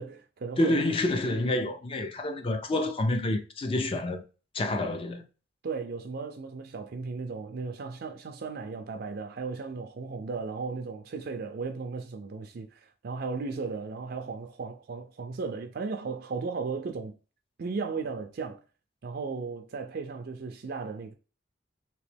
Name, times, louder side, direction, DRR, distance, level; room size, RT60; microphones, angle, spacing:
voice 1, 0.0-0.8 5.6-17.1 17.6-18.6 19.0-21.1, right 4 dB, 50° right, 0.4 m, -35 dB
voice 2, 0.6-4.2 4.5-5.2, left 2 dB, 30° left, 0.4 m, -28 dB
3.0 x 2.9 x 3.3 m
head